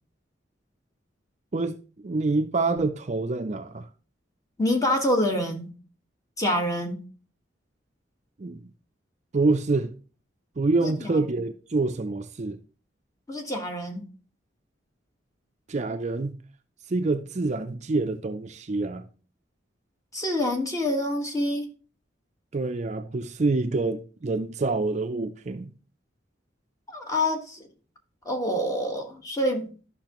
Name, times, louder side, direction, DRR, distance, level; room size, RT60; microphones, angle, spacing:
voice 1, 1.5-3.8 8.4-8.6 9.3-9.9 10.6-12.6 15.7-16.4 16.9-19.1 22.5-25.7, right 3 dB, 40° right, 0.5 m, -26 dB
voice 2, 4.6-5.7 6.4-7.0 10.8-11.3 13.3-14.1 20.1-21.7 26.9-27.6 28.2-29.9, left 1 dB, 20° left, 1.5 m, -27 dB
12.0 x 5.7 x 3.0 m
head